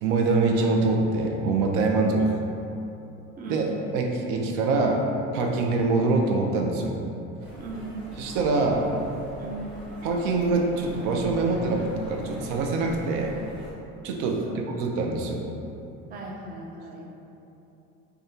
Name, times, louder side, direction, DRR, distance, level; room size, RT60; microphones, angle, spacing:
voice 1, 0.0-2.3 3.5-3.7 3.9-5.0 5.3-6.9 8.2-8.9 10.0-13.4 14.0-15.5, right 3 dB, 85° right, 2 dB, 0.6 m, -24 dB
voice 2, 3.4-3.7 7.6-8.0 9.4-9.7 14.4-14.7 16.1-17.1, right 2 dB, 30° right, -1 dB, 0.4 m, -38 dB
sound 1, 7.4-13.7, right 1 dB, 5° right, 0.8 m, -43 dB
5.0 x 2.3 x 2.8 m, 2.9 s
cardioid pair, 165°, 31 cm